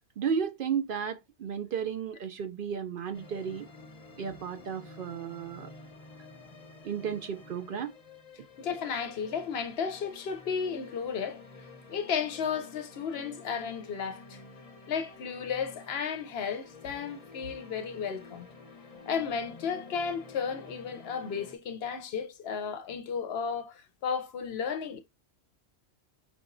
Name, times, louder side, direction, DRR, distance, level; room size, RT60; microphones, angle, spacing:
voice 1, 0.2-3.7 4.2-5.7 6.8-7.9, right 7 dB, 60° right, 0.6 m, -33 dB
sound 1, 3.1-21.6, left 3 dB, 35° left, 0.8 m, -50 dB
voice 2, 8.6-11.4 11.9-14.4 14.9-18.5 19.1-25.0, left 6 dB, 70° left, 0.8 m, -33 dB
5.2 x 2.9 x 2.5 m
omnidirectional pair, 1.1 m